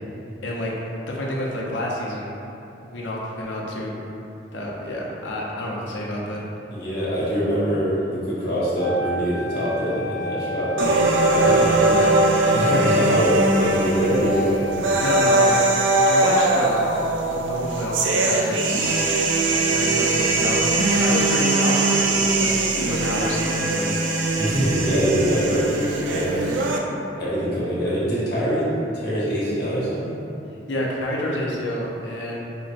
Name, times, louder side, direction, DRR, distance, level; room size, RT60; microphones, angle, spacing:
voice 1, 0.4-0.7 1.1-2.4 2.9-3.9 4.5-6.4 11.3-12.3 15.0-15.7 16.1-16.8 17.2-19.0 19.4-23.9 30.7-32.4, left 1 dB, 85° left, -3 dB, 0.6 m, -28 dB
voice 2, 6.7-11.8 12.5-15.0 24.4-26.6 27.2-28.7 28.9-30.2, equal, 55° left, -9 dB, 1.1 m, -24 dB
Wind instrument woodwind instrument, 8.7-17.0, equal, 60° right, 0.9 m, -32 dB
sound 1, 10.8-26.8, right 2 dB, 85° right, 0.4 m, -21 dB
4.6 x 3.0 x 2.5 m, 2.9 s
head